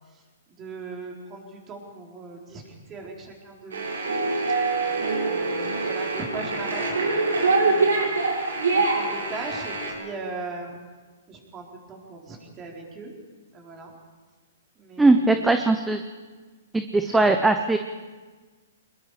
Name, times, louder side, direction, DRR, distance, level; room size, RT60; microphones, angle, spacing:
voice 1, 0.6-2.6 2.9-3.8 4.8-8.1 8.7-10.8 11.3-13.1 13.5-13.9 14.8-15.4 17.0-17.3, right 3 dB, 20° right, 0 dB, 4.4 m, -38 dB
sound 1, 3.7-9.9, right 3 dB, 85° right, 6.3 m, -24 dB
voice 2, 15.0-16.0 16.7-17.8, right 2 dB, 5° right, 7 dB, 0.8 m, -20 dB
24.5 x 21.0 x 5.1 m, 1.4 s
hypercardioid pair, 145°, 0 cm